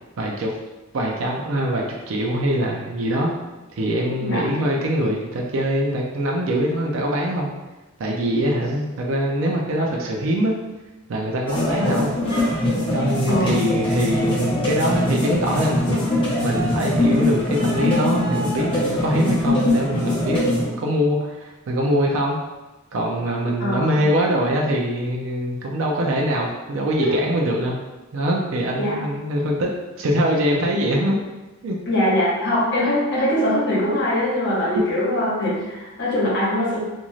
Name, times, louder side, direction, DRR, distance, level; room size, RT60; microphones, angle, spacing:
voice 1, 0.2-0.5 0.9-3.3 3.8-7.5 8.0-10.5 11.1-12.1 12.9-22.4 22.9-27.7 28.1-29.7 30.0-31.2 31.6-31.8 34.8-34.9, equal, 65° right, -1 dB, 0.4 m, -23 dB
sound 1, 11.5-20.6, left 1 dB, 25° left, 0.7 m, -22 dB
voice 2, 23.6-24.0 27.0-27.1 28.8-29.0 31.9-36.8, left 1 dB, 55° left, -6 dB, 1.0 m, -22 dB
2.6 x 2.3 x 3.0 m, 1.1 s
head